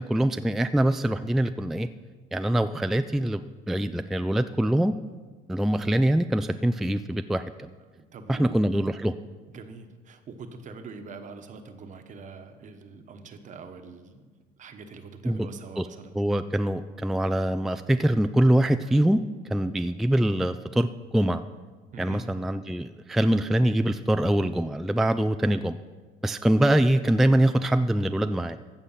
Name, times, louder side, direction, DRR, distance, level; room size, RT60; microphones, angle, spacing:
voice 1, 0.0-1.9 2.3-4.9 5.5-7.7 8.3-9.1 15.2-15.5 15.8-15.9 16.1-19.2 19.5-20.9 21.1-21.4 22.0-25.8 26.2-28.6, right 1 dB, ahead, 9 dB, 0.3 m, -24 dB
voice 2, 7.9-8.6 9.5-14.3 14.6-16.2 21.9-22.2, right 4 dB, 50° right, 7 dB, 1.2 m, -43 dB
15.0 x 6.7 x 5.7 m, 1.4 s
cardioid pair, 110°, 17 cm